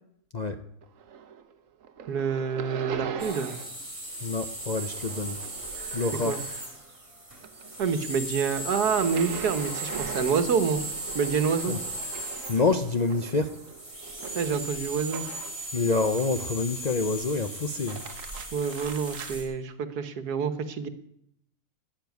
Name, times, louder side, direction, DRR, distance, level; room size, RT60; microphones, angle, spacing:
sound 1, 0.8-1.5 1.8-3.8 4.1-7.0 7.3-15.7 16.2-16.8 17.7-19.4, right 8 dB, 60° right, 1.3 m, -41 dB
voice 1, 2.1-3.6 6.3-6.4 7.8-10.8 11.1-11.8 14.3-15.2 18.5-20.9, right 6 dB, 80° right, 12 dB, 1.6 m, -27 dB
sound 2, 3.2-19.4, right 1 dB, 20° right, 3.8 m, -37 dB
voice 2, 4.2-5.4 5.9-6.4 11.7-11.8 12.5-13.5 15.7-18.0, left 3 dB, 45° left, 7 dB, 0.6 m, -27 dB
12.0 x 8.8 x 9.3 m, 0.76 s
omnidirectional pair, 1.7 m